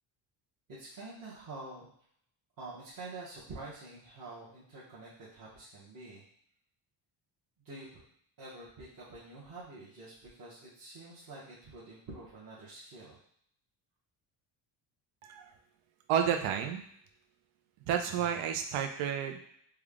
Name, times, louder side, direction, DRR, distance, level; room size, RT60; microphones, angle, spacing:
voice 1, 0.7-1.9 2.6-6.2 7.6-8.0 8.4-13.2, right 2 dB, 40° right, -9 dB, 1.1 m, -47 dB
voice 2, 16.1-16.8 17.9-19.4, right 8 dB, 80° right, 5 dB, 0.6 m, -31 dB
3.5 x 2.3 x 3.5 m, 0.66 s
cardioid pair, 120°, 50 cm